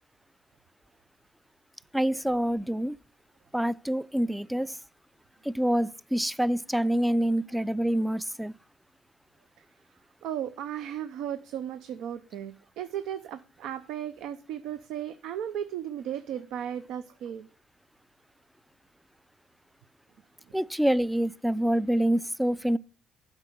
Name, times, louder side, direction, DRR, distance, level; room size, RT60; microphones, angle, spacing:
voice 1, 1.9-3.0 3.5-4.8 5.4-8.5 20.5-22.8, right 1 dB, 5° right, 0.4 m, -26 dB
voice 2, 10.2-17.5, right 10 dB, 75° right, 0.6 m, -35 dB
8.1 x 5.3 x 6.6 m
supercardioid pair, 70°, 0 cm